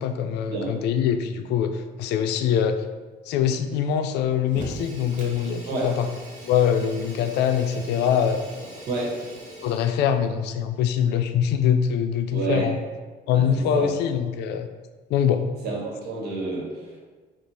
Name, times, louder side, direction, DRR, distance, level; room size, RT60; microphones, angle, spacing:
voice 1, 0.0-2.8 3.3-6.1 6.4-8.4 9.6-12.8 13.3-14.7 15.1-15.5, left 8 dB, 80° left, 8 dB, 0.4 m, -23 dB
Fire, 4.5-10.1, equal, 50° right, 1.2 m, -40 dB
voice 2, 12.3-12.7 13.3-13.9 15.6-17.0, right 3 dB, 75° right, -2 dB, 1.3 m, -29 dB
4.1 x 2.5 x 4.8 m, 1.4 s
cardioid pair, 110°, 17 cm